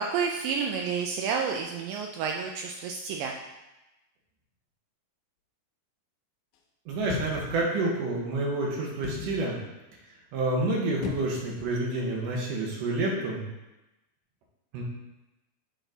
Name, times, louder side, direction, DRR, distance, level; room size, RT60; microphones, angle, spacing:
voice 1, 0.0-3.3, right 6 dB, 85° right, 1 dB, 2.0 m, -30 dB
voice 2, 6.9-9.6 10.3-13.4 14.7-14.8, right 2 dB, 65° right, -2 dB, 2.5 m, -28 dB
sound 1, 7.0-7.7 9.0-9.4 11.0-11.6 11.9-12.0, left 6 dB, 80° left, 2.1 m, -35 dB
9.1 x 4.1 x 3.9 m, 1.0 s
omnidirectional pair, 4.6 m